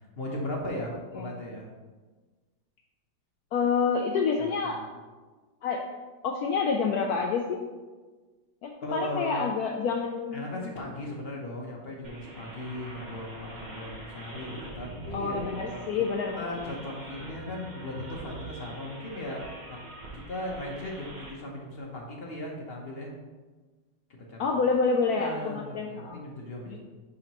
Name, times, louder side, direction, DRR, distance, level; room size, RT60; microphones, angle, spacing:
voice 1, 0.2-1.7 4.6-4.8 8.8-9.5 10.3-16.0 16.4-19.4 19.7-19.8 20.1-23.1 24.3-24.5 25.1-26.8, left 1 dB, 45° left, -1 dB, 0.8 m, -37 dB
voice 2, 3.5-4.8 5.6-5.9 6.2-7.6 8.6-10.5 15.1-16.5 24.4-26.2 26.7-26.8, left 5 dB, 80° left, 2 dB, 0.8 m, -28 dB
sound 1, 12.0-21.3, right 1 dB, 35° right, 0.7 m, -43 dB
10.5 x 3.9 x 3.0 m, 1.3 s
omnidirectional pair, 2.1 m